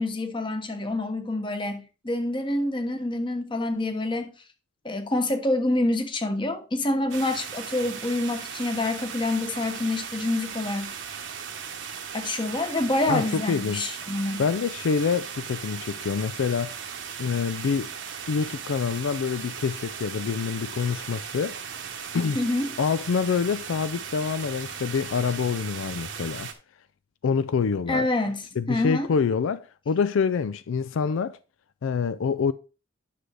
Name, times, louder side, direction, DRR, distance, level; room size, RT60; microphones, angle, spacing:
voice 1, 0.0-4.3 4.8-11.0 12.1-14.4 22.3-22.7 27.9-29.1, left 2 dB, 25° left, 1.0 m, -27 dB
sound 1, 7.1-26.5, right 7 dB, 65° right, 1.1 m, -37 dB
voice 2, 13.1-13.9 14.4-16.8 17.2-17.9 18.3-21.6 22.1-22.4 22.8-26.5 27.2-28.1 28.6-31.4 31.8-32.5, left 6 dB, 80° left, 0.4 m, -26 dB
9.9 x 6.3 x 3.3 m
head